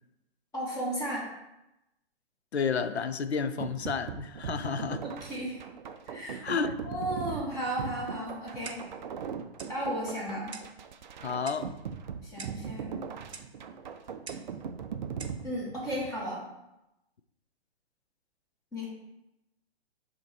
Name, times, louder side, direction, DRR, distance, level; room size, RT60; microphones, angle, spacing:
voice 1, 0.5-1.2 5.0-5.6 6.1-8.8 9.7-10.5 12.2-12.9 15.4-16.4 18.7-18.9, equal, 10° left, -6 dB, 1.9 m, -34 dB
voice 2, 2.5-5.0 6.4-6.8 11.2-11.7, left 5 dB, 80° left, 10 dB, 0.6 m, -31 dB
sound 1, 3.6-16.2, right 7 dB, 45° right, 0.4 m, -40 dB
Clock, 8.7-9.0 9.6-9.8 10.5-10.8 11.5-11.7 12.4-12.7 13.3-13.5 14.3-14.5 15.2-15.4, right 4 dB, 80° right, 0.7 m, -45 dB
7.7 x 2.9 x 4.3 m, 0.91 s
figure-of-eight pair, 125°, 32 cm